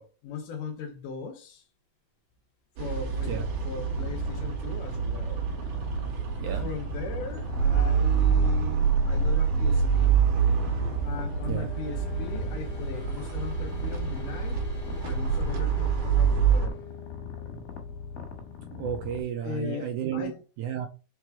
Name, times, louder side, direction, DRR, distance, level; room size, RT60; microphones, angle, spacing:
voice 1, 0.0-1.7 2.8-5.5 6.6-10.2 11.0-14.6 15.0-16.8 19.4-20.4, left 5 dB, 75° left, 2.1 m, -39 dB
sound 1, 2.8-16.7, right 6 dB, 50° right, 2.2 m, -26 dB
Purr, 3.1-19.2, left 6 dB, 90° left, 3.3 m, -40 dB
sound 2, 7.3-19.8, left 5 dB, 45° left, 1.9 m, -49 dB
voice 2, 18.7-20.3 20.6-20.9, right 9 dB, 80° right, 1.8 m, -32 dB
5.8 x 4.8 x 4.4 m
omnidirectional pair, 4.3 m